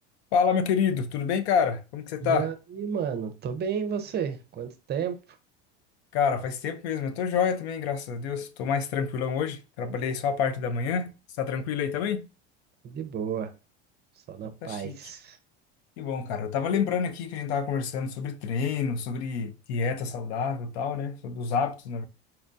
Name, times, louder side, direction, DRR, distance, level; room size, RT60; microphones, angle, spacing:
voice 1, 0.3-2.5 6.1-11.1 11.4-12.3 14.6-15.0 16.0-22.1, left 6 dB, 80° left, 0.6 m, -28 dB
voice 2, 2.2-5.2 12.8-13.5 14.3-15.4, right 7 dB, 30° right, 0.6 m, -32 dB
4.3 x 2.2 x 2.5 m
supercardioid pair, 100°, 32 cm